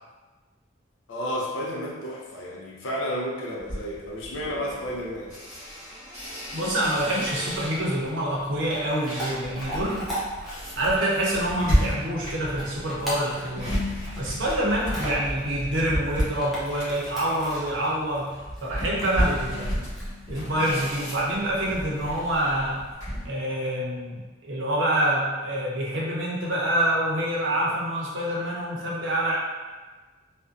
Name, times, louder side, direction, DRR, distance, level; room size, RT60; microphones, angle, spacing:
voice 1, 1.1-5.3, equal, 75° left, -3 dB, 0.5 m, -32 dB
sound 1, 3.6-8.1 8.5-23.3, equal, 40° left, 1.0 m, -32 dB
Chewing mastication / Dog, 6.4-23.0, right 1 dB, ahead, 0.5 m, -40 dB
voice 2, 6.5-10.1 10.8-13.7 14.2-19.8 20.3-22.8 23.2-29.3, right 1 dB, 70° right, -5 dB, 0.6 m, -26 dB
2.5 x 2.1 x 2.4 m, 1.3 s
head